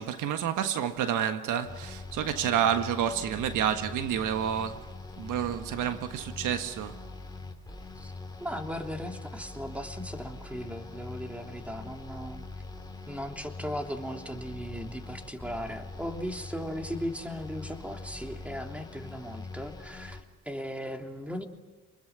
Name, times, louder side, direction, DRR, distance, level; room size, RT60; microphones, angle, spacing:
voice 1, 0.0-4.9 5.2-7.0, right 9 dB, 80° right, 1.5 m, -29 dB
sound 1, 1.6-20.2, left 3 dB, 15° left, 3.5 m, -43 dB
voice 2, 8.4-12.4 13.1-21.5, equal, 5° right, 3.1 m, -37 dB
29.0 x 21.0 x 8.1 m
cardioid pair, 90°, 30 cm